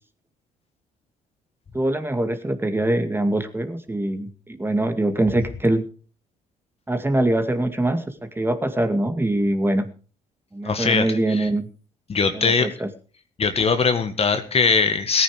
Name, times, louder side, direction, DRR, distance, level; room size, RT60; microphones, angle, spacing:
voice 1, 1.7-5.8 6.9-9.9 10.5-11.7 12.3-12.9, right 1 dB, 15° right, 8 dB, 2.1 m, -23 dB
voice 2, 10.6-11.5 12.1-12.7 13.4-15.2, left 5 dB, 40° left, 9 dB, 1.8 m, -21 dB
18.0 x 9.6 x 5.0 m, 0.39 s
hypercardioid pair, 50°, 16 cm